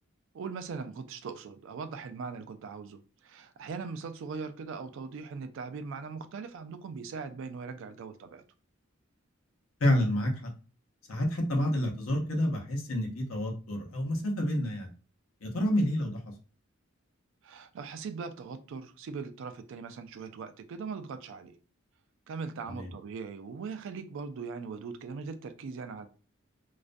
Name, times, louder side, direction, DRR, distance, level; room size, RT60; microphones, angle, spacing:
voice 1, 0.3-8.4 17.4-21.6 22.3-26.1, right 5 dB, 65° right, 0.3 m, -40 dB
voice 2, 9.8-10.5 11.1-14.9 15.4-16.2 22.7-22.9, left 1 dB, 80° left, 0.7 m, -29 dB
2.4 x 2.1 x 2.5 m
head